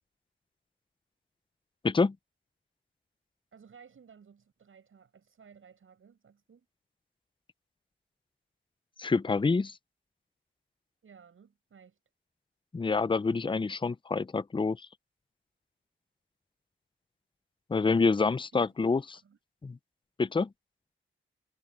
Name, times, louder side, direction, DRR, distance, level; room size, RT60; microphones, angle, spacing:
voice 1, 1.8-2.2 9.0-9.8 12.7-14.8 17.7-19.0 19.6-19.8 20.2-20.5, left 4 dB, 25° left, 0.5 m, -27 dB
voice 2, 3.5-6.7 11.0-12.0 18.5-18.9 19.2-19.4, right 6 dB, 75° right, 7.2 m, -56 dB
cardioid pair, 75°, 21 cm